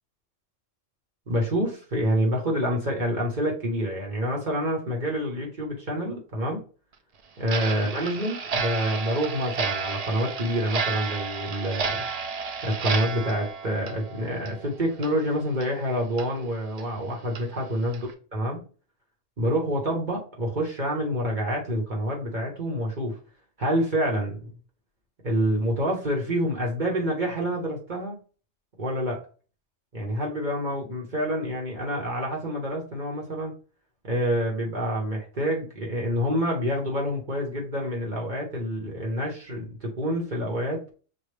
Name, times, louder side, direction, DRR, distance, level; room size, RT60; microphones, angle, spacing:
voice 1, 1.3-6.6 7.4-12.1 12.6-18.0 18.3-18.6 19.4-23.2 23.6-24.5 25.2-28.1 28.8-29.2 29.9-33.5 34.0-40.8, equal, 40° right, -2 dB, 1.2 m, -27 dB
Clock, 7.4-14.7 15.0-15.1 15.6-15.7 16.2-16.3 16.8-16.9 17.4-17.5 17.9-18.1, right 5 dB, 75° right, 0.3 m, -31 dB
6.3 x 2.3 x 3.3 m, 0.38 s
omnidirectional pair, 1.3 m